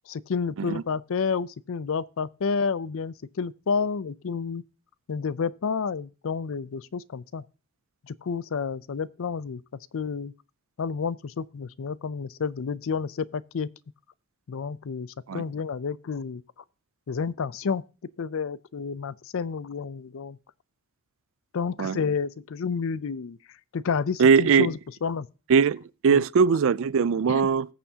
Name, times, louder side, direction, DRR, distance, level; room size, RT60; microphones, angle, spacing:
voice 1, 0.1-4.6 5.1-7.4 8.1-9.6 9.9-10.3 10.8-13.7 14.5-16.4 17.1-17.8 18.2-20.4 21.5-23.4 23.7-25.3 26.1-26.2 27.3-27.4, left 5 dB, 65° left, 0.5 m, -30 dB
voice 2, 24.2-24.7 25.5-27.7, right 6 dB, 65° right, 0.4 m, -20 dB
20.5 x 6.9 x 2.8 m
head